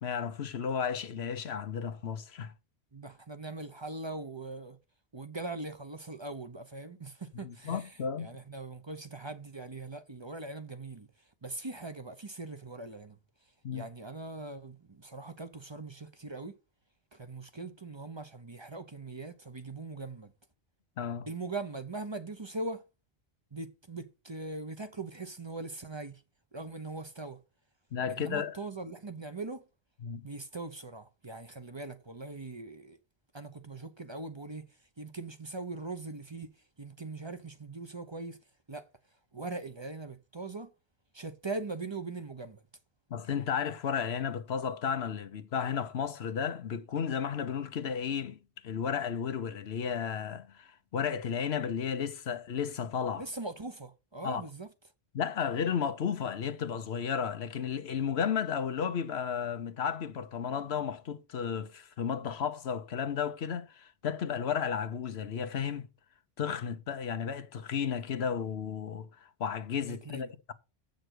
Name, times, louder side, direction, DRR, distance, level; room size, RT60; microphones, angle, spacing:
voice 1, 0.0-2.5 7.3-8.3 13.6-13.9 21.0-21.3 27.9-28.6 30.0-30.2 43.1-53.2 54.2-54.5 55.1-65.9 66.4-69.1 69.4-70.5, left 7 dB, 85° left, 1.1 m, -33 dB
voice 2, 2.9-4.8 5.1-11.1 11.4-13.2 13.7-16.6 17.1-20.3 21.3-22.8 23.5-26.2 26.5-27.4 28.1-29.6 30.2-33.0 33.3-34.7 35.0-38.4 38.7-38.9 39.3-40.7 41.1-42.6 53.2-54.7 69.8-70.3, right 3 dB, 30° right, 0.8 m, -41 dB
8.0 x 6.5 x 6.4 m
omnidirectional pair, 1.0 m